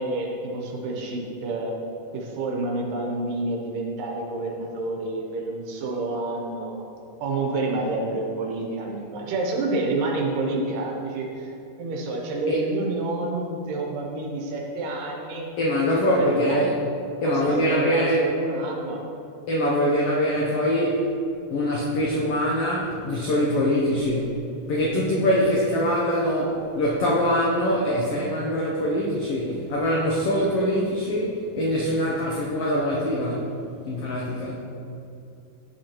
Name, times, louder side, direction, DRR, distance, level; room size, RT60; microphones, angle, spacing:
voice 1, 0.0-1.7 2.1-6.8 7.2-11.5 11.8-15.5 16.0-16.7 17.2-19.0, right 2 dB, 85° right, 0 dB, 2.6 m, -29 dB
voice 2, 15.6-16.7 17.2-18.2 19.5-21.0 21.5-24.4 24.7-33.5 33.9-34.5, equal, 80° left, -4 dB, 1.3 m, -23 dB
12.0 x 4.9 x 2.9 m, 2.7 s
omnidirectional pair, 3.7 m